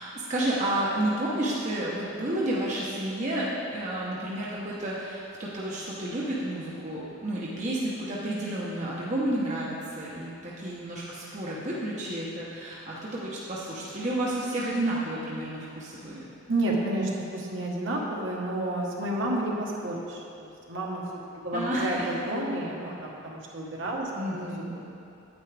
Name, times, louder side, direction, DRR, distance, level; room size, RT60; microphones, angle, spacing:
voice 1, 0.0-16.3 21.5-22.1 24.2-24.7, right 1 dB, 35° right, -6 dB, 0.9 m, -31 dB
voice 2, 16.5-21.0 21.3-24.5, right 1 dB, 60° right, -3 dB, 1.3 m, -30 dB
9.5 x 9.0 x 3.4 m, 2.7 s
head